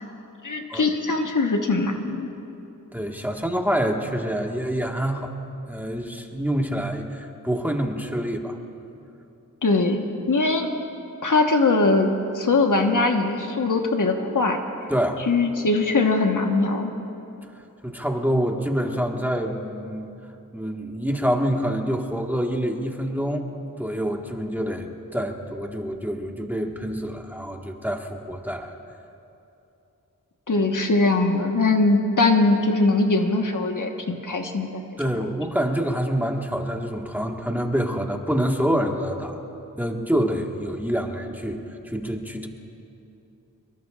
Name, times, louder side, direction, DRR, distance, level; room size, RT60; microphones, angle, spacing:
voice 1, 0.4-2.3 9.6-10.7 11.2-14.6 15.3-16.9 30.5-35.0, left 3 dB, 60° left, 3 dB, 1.3 m, -21 dB
voice 2, 2.9-5.3 5.7-8.6 14.9-15.2 17.8-20.1 20.5-23.5 23.8-28.8 35.0-39.4 39.8-41.6 41.8-42.5, equal, 5° right, 2 dB, 1.6 m, -26 dB
24.0 x 22.0 x 2.5 m, 2.9 s
cardioid pair, 45°, 35 cm